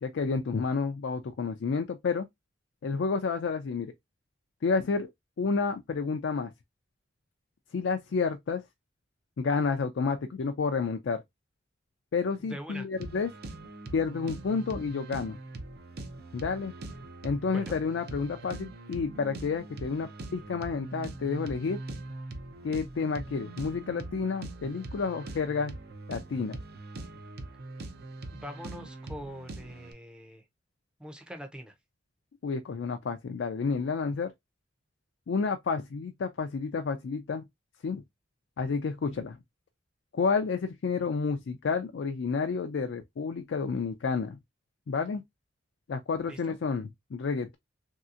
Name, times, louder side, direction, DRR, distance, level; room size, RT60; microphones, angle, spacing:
voice 1, 0.0-2.3 2.8-3.9 4.6-5.1 5.4-6.5 7.7-8.6 9.4-11.2 12.1-13.3 13.9-15.4 16.3-16.7 17.2-21.8 22.6-25.7 26.1-26.6 32.4-34.3 35.3-37.4 37.8-38.0 38.6-39.4 40.1-44.4 44.9-45.2 45.9-47.6, left 5 dB, 75° left, 0.4 m, -30 dB
voice 2, 12.5-12.9 17.5-17.8 28.3-30.4 31.0-31.7 46.3-46.6, equal, 5° right, 0.5 m, -43 dB
sound 1, 13.0-29.9, right 2 dB, 55° right, 0.5 m, -42 dB
3.2 x 2.7 x 2.4 m
head